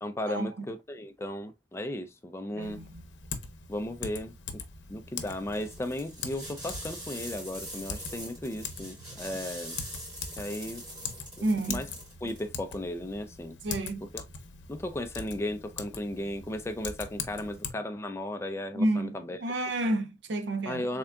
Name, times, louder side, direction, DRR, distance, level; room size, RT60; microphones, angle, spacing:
voice 1, 0.0-2.8 3.7-4.3 4.9-9.8 10.4-10.8 11.4-11.9 12.2-13.6 14.0-14.2 14.7-19.4 20.7-21.0, left 1 dB, 15° left, 0.3 m, -35 dB
voice 2, 2.5-3.0 11.4-11.8 13.6-14.1 18.8-19.1 19.4-20.8, right 1 dB, 65° right, 0.5 m, -30 dB
Typing, 2.6-17.7, left 5 dB, 70° left, 0.7 m, -42 dB
sound 1, 5.3-12.5, right 1 dB, 25° right, 2.3 m, -43 dB
3.6 x 3.4 x 2.3 m
head